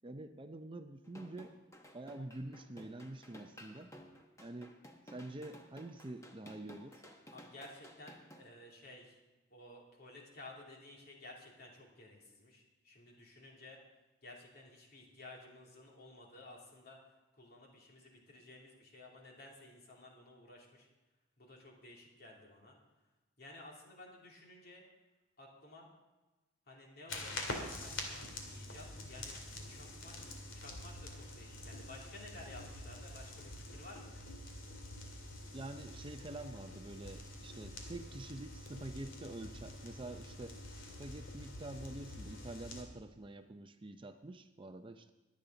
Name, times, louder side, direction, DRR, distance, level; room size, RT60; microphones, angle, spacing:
voice 1, 0.0-1.5 1.9-3.9 4.4-4.7 5.1-7.0 35.5-40.6 40.8-45.1, right 2 dB, 25° right, 7 dB, 0.6 m, -47 dB
sound 1, 1.0-8.4, equal, 15° left, 1.1 m, -55 dB
voice 2, 7.3-9.2 9.5-13.8 14.2-17.0 17.3-20.9 21.4-22.8 23.4-24.8 25.4-25.9 26.7-29.4 29.7-34.2, left 2 dB, 50° left, -2 dB, 2.9 m, -54 dB
sound 2, 27.1-42.8, left 2 dB, 75° left, 2.3 m, -46 dB
22.5 x 8.5 x 3.9 m, 1.1 s
head